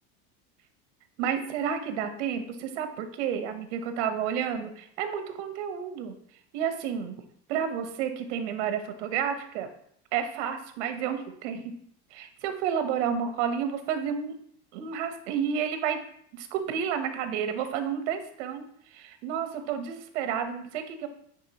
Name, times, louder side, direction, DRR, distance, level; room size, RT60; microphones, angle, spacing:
voice 1, 1.2-6.1 6.5-7.2 7.5-9.7 10.1-11.6 12.1-14.4 14.7-16.0 16.3-18.7 18.9-21.1, right 8 dB, 80° right, 7 dB, 1.0 m, -30 dB
9.4 x 3.9 x 2.9 m, 0.67 s
cardioid pair, 175°, 35 cm